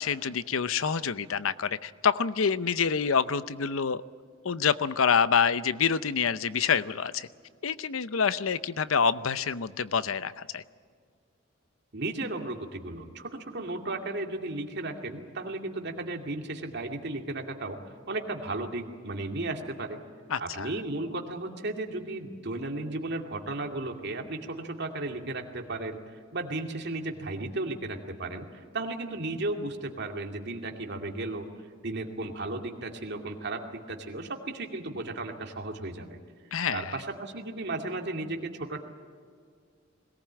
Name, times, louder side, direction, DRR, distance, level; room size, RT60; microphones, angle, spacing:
voice 1, 0.0-4.0 4.4-7.3 7.6-10.6 20.3-20.7 36.5-36.9, left 6 dB, 85° left, 15 dB, 0.7 m, -27 dB
voice 2, 11.9-17.8 18.1-20.0 20.4-31.5 31.8-36.2 36.7-38.8, right 2 dB, 55° right, 3 dB, 2.4 m, -35 dB
21.5 x 18.5 x 8.8 m, 2.1 s
head